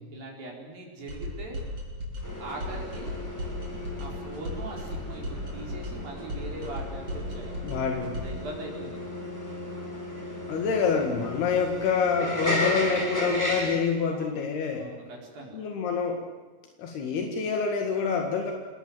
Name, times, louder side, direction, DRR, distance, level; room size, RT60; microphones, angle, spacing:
voice 1, 0.1-1.6 2.4-3.1 4.0-7.7 8.1-9.2 14.0-14.4 14.7-15.6, right 2 dB, 65° right, -1 dB, 6.1 m, -41 dB
sound 1, 1.1-8.5, left 1 dB, 35° right, 7.9 m, -36 dB
sound 2, 2.2-13.8, left 1 dB, 5° left, 6.1 m, -34 dB
voice 2, 7.6-8.2 10.5-14.9 15.5-16.2 16.8-18.5, left 5 dB, 80° left, 3 dB, 4.0 m, -27 dB
27.5 x 20.5 x 7.9 m, 1.4 s
omnidirectional pair, 4.5 m